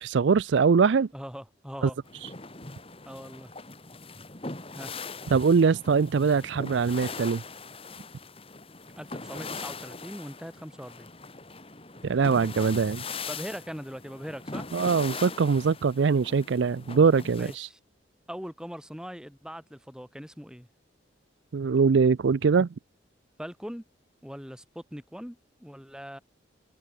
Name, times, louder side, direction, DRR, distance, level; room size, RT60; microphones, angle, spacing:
voice 1, 0.0-1.1 1.8-1.9 5.3-7.4 12.0-13.0 14.7-17.7 21.5-22.7, right 5 dB, 75° right, 0.4 m, -22 dB
voice 2, 1.1-2.0 3.0-3.5 4.7-5.0 9.0-11.1 13.3-14.7 17.3-17.8 18.3-20.7 23.4-23.8 24.2-26.2, equal, 5° right, 5.6 m, -41 dB
sound 1, 2.1-17.6, left 4 dB, 30° left, 2.8 m, -41 dB
head